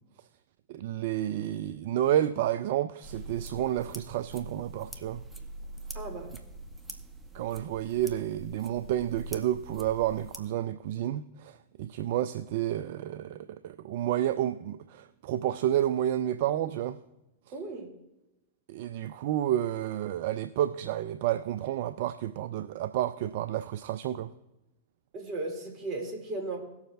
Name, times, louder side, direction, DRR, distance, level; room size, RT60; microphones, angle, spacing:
voice 1, 0.7-5.2 7.3-17.0 18.7-24.3, right 12 dB, 60° right, 0.4 m, -30 dB
sound 1, 3.0-10.4, right 1 dB, 10° right, 1.1 m, -44 dB
voice 2, 5.9-6.3 17.5-17.9 25.1-26.6, right 2 dB, 40° right, 2.8 m, -36 dB
18.5 x 7.1 x 2.6 m
hypercardioid pair, 95°, 0 cm